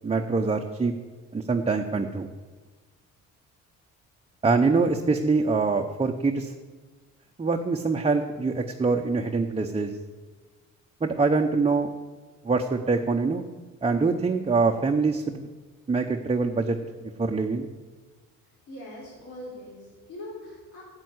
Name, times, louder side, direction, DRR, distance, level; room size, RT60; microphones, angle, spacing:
voice 1, 0.0-0.9 1.3-2.3 4.4-6.5 7.4-9.9 11.0-11.9 12.4-13.4 13.8-15.4 15.9-17.7, right 4 dB, 20° right, 2 dB, 0.8 m, -24 dB
voice 2, 18.7-20.8, left 1 dB, 75° left, -3 dB, 4.4 m, -41 dB
9.3 x 8.6 x 8.0 m, 1.3 s
cardioid pair, 90°, 30 cm